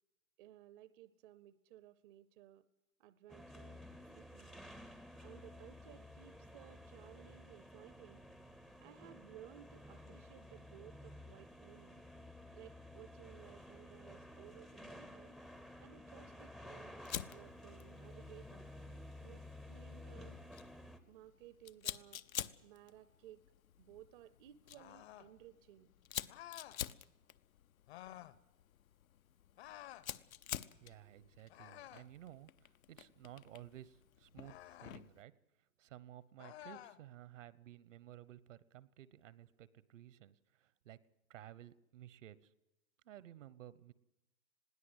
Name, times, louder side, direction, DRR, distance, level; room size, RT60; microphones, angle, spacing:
voice 1, 0.4-2.7 3.0-4.7 5.2-8.2 8.8-12.1 12.5-15.4 15.8-17.0 17.3-18.7 19.2-20.4 21.1-22.2 22.6-23.4 23.8-25.9, right 12 dB, 40° right, 15 dB, 0.7 m, -58 dB
sound 1, 3.3-21.0, left 1 dB, ahead, 0.6 m, -53 dB
Fire, 17.0-35.2, left 10 dB, 80° left, 0.9 m, -49 dB
Young Male Screams, 24.7-25.3 26.3-26.8 27.9-28.4 29.6-30.1 31.5-32.1 34.4-35.0 36.4-37.0, left 13 dB, 50° left, 1.0 m, -52 dB
voice 2, 30.8-35.4 35.8-41.0 41.3-42.5 43.0-43.9, right 12 dB, 60° right, 18 dB, 1.1 m, -55 dB
21.0 x 16.5 x 8.1 m, 0.95 s
hypercardioid pair, 130°, 41 cm